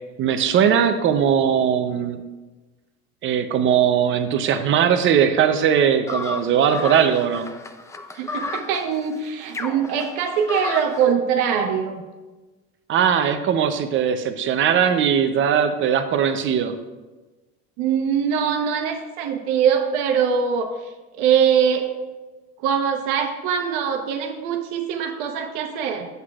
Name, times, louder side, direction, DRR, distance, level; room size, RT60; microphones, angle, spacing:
voice 1, 0.2-2.2 3.2-7.5 12.9-16.7, right 8 dB, 40° right, 8 dB, 0.7 m, -19 dB
sound 1, 6.1-11.1, left 3 dB, 10° left, 0.4 m, -32 dB
voice 2, 8.2-12.0 17.8-20.7 21.2-21.9 22.6-26.1, right 7 dB, 80° right, 4 dB, 1.1 m, -22 dB
9.8 x 8.0 x 2.4 m, 1.2 s
cardioid pair, 125°, 30 cm